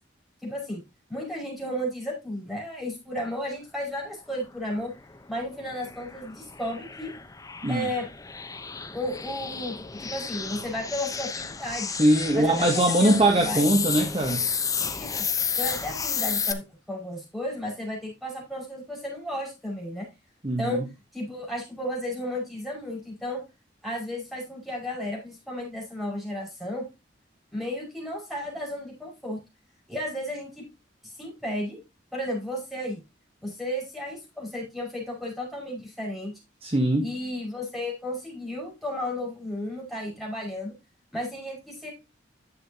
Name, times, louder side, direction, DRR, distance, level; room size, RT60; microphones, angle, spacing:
voice 1, 0.4-0.8 1.1-4.9 5.3-7.1 7.7-8.1 8.9-11.9 12.3-13.7 14.8-15.1 15.6-20.1 20.6-20.9 21.1-23.4 23.8-26.9 27.5-29.4 29.9-30.7 31.0-31.8 32.1-33.0 33.4-36.3 37.0-40.7 41.1-41.9, left 1 dB, ahead, 5.3 m, -33 dB
sound 1, 5.0-16.5, left 6 dB, 20° left, 0.7 m, -32 dB
voice 2, 12.0-14.4 20.4-20.8 36.6-37.1, right 1 dB, 30° right, 1.2 m, -22 dB
11.0 x 7.6 x 2.8 m
head